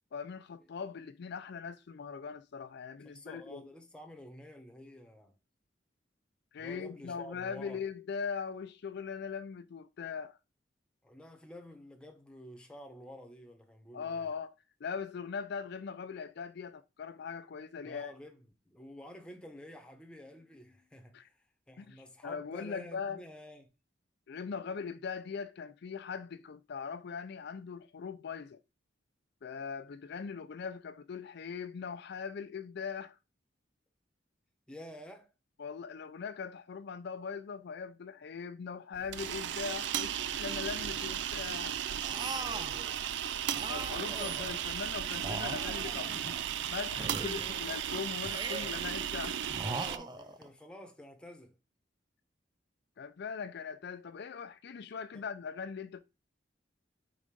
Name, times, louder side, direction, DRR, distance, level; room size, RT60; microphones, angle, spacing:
voice 1, 0.1-3.6 6.5-10.4 13.9-14.5 14.8-18.1 21.1-21.3 21.8-23.2 24.3-28.6 29.4-33.2 35.6-41.8 43.7-49.5 53.0-56.0, left 6 dB, 60° left, 0.4 m, -40 dB
voice 2, 3.0-5.3 6.6-7.8 11.0-14.3 17.8-23.7 34.7-35.3 42.1-43.0 47.0-47.7 49.6-51.6 55.1-55.3, left 1 dB, 5° left, 0.9 m, -50 dB
sound 1, 38.9-50.0, right 9 dB, 65° right, 0.4 m, -35 dB
sound 2, 42.0-42.8 43.5-44.6 45.1-46.5 46.9-47.7 48.2-48.9 49.5-50.5, right 3 dB, 25° right, 0.6 m, -40 dB
5.0 x 3.8 x 5.2 m
head